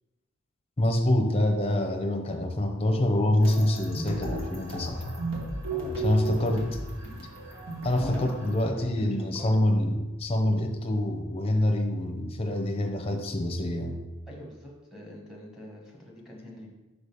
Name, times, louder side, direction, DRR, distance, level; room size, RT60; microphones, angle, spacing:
voice 1, 0.8-5.0 6.0-6.7 7.8-14.0, left 1 dB, 25° left, 2 dB, 0.7 m, -26 dB
sound 1, 3.4-8.7, right 2 dB, 70° right, 1.6 m, -34 dB
voice 2, 5.7-6.7 8.0-8.2 8.8-9.6 14.3-16.7, equal, ahead, -3 dB, 1.3 m, -44 dB
5.0 x 5.0 x 5.4 m, 1.1 s
head